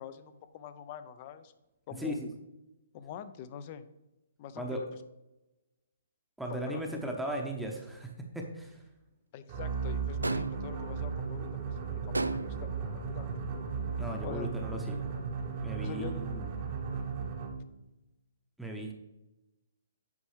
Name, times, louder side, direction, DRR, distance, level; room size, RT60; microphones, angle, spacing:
voice 1, 0.0-1.5 1.9-2.2 2.9-3.8 4.4-4.9 6.5-6.8 9.3-13.3 13.7-13.8 14.2-14.5 15.8-16.1, left 9 dB, 40° left, 12 dB, 0.5 m, -44 dB
voice 2, 2.0-2.3 4.6-4.8 6.4-8.8 14.0-15.1 15.6-16.4 18.6-18.9, right 1 dB, 5° right, 0 dB, 0.8 m, -37 dB
sound 1, 9.5-17.7, right 5 dB, 40° right, 1.0 m, -36 dB
sound 2, 10.2-10.8 12.1-12.8, right 2 dB, 90° right, 0.3 m, -33 dB
8.3 x 5.3 x 3.3 m, 0.96 s
figure-of-eight pair, 130°, 0 cm